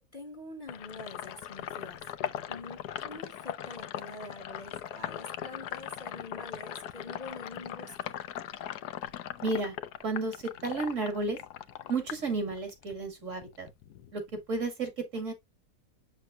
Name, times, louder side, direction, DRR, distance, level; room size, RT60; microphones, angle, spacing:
voice 1, 0.0-2.0 2.5-8.2, left 2 dB, 30° left, 1.5 m, -46 dB
Sink (filling or washing), 0.7-12.9 13.3-14.7, left 11 dB, 80° left, 1.3 m, -40 dB
voice 2, 9.4-11.4 11.9-13.7 14.1-15.3, right 3 dB, 50° right, 2.6 m, -32 dB
7.5 x 6.6 x 2.4 m
omnidirectional pair, 1.7 m